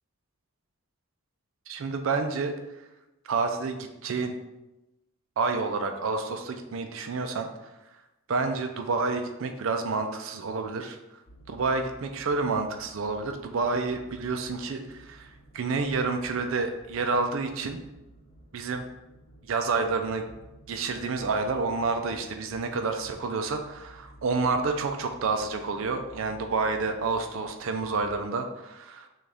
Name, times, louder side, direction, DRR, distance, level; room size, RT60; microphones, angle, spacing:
voice 1, 1.7-2.6 3.2-4.4 5.4-7.5 8.3-11.0 11.5-17.8 18.5-18.9 19.5-20.2 20.7-29.1, right 4 dB, 65° right, 6 dB, 0.4 m, -29 dB
sound 1, 11.3-28.1, right 2 dB, 40° left, 0.7 m, -53 dB
6.2 x 2.4 x 3.4 m, 0.99 s
head